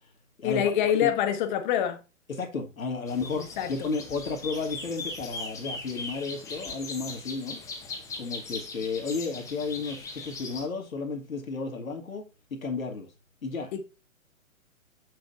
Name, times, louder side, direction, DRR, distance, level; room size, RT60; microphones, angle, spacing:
voice 1, 0.4-2.0 3.3-3.7 13.7-13.8, left 9 dB, 35° left, 1.1 m, -26 dB
voice 2, 2.3-7.6 8.2-13.1 13.4-13.7, left 4 dB, 80° left, 1.7 m, -33 dB
sound 1, 3.1-10.7, left 3 dB, 10° left, 0.7 m, -39 dB
6.9 x 6.4 x 2.6 m
figure-of-eight pair, 120°, 41 cm